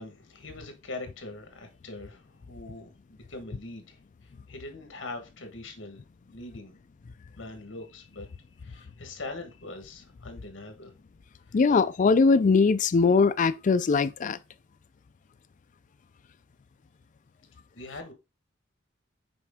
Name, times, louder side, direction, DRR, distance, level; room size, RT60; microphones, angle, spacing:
voice 1, 0.0-6.0 6.3-6.8 7.4-8.3 8.6-10.9 11.5-11.6 17.7-18.1, left 2 dB, 70° left, 1.3 m, -42 dB
voice 2, 11.5-14.4, left 4 dB, 40° left, 0.4 m, -21 dB
6.2 x 4.3 x 3.6 m
head